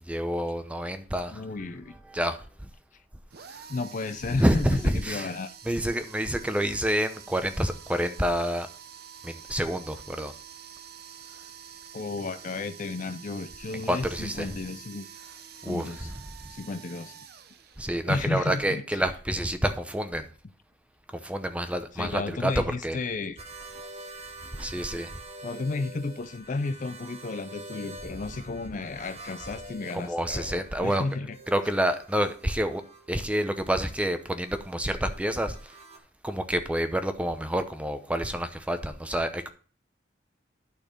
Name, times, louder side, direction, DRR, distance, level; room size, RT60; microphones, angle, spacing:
voice 1, 0.1-1.4 2.1-2.7 3.5-3.6 4.4-5.3 5.7-8.7 9.2-10.3 13.9-14.5 15.6-15.9 17.8-20.3 21.1-23.0 24.6-25.1 29.9-31.0 31.5-32.8 33.1-35.7 36.2-39.5, right 1 dB, 5° right, 0.7 m, -28 dB
voice 2, 1.3-2.0 3.7-5.5 11.9-15.1 15.7-16.1 16.5-17.2 18.1-18.8 22.0-23.4 24.7-24.9 25.4-31.4, left 3 dB, 45° left, 0.5 m, -33 dB
sound 1, 3.3-18.2, right 8 dB, 55° right, 0.7 m, -47 dB
sound 2, 23.4-36.0, right 1 dB, 35° right, 1.4 m, -47 dB
12.0 x 4.3 x 5.0 m
head